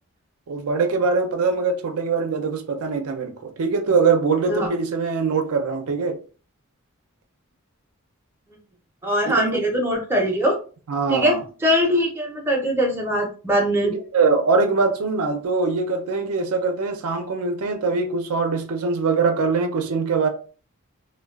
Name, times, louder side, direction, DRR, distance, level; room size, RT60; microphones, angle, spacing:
voice 1, 0.5-6.2 9.4-9.6 10.9-11.4 13.8-20.3, right 4 dB, 80° right, 0.5 m, -22 dB
voice 2, 9.0-10.5 11.1-11.4 11.6-13.9, equal, 10° right, 0.5 m, -21 dB
3.1 x 2.1 x 2.3 m
head